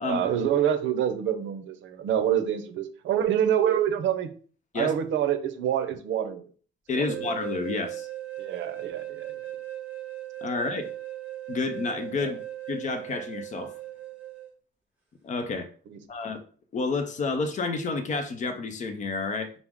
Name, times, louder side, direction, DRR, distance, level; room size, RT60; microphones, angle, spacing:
voice 1, 0.0-4.3 4.7-6.5 6.9-7.2 8.4-9.4 12.2-12.3 15.9-16.0, right 9 dB, 80° right, 9 dB, 0.6 m, -26 dB
voice 2, 6.9-8.1 10.4-10.8 11.5-12.4 12.7-13.7 15.2-15.7 16.1-16.4 16.7-19.5, left 3 dB, 40° left, 7 dB, 0.6 m, -30 dB
sound 1, 6.9-14.5, right 13 dB, 10° right, 1.1 m, -38 dB
5.9 x 2.0 x 3.6 m, 0.43 s
cardioid pair, 175°, 19 cm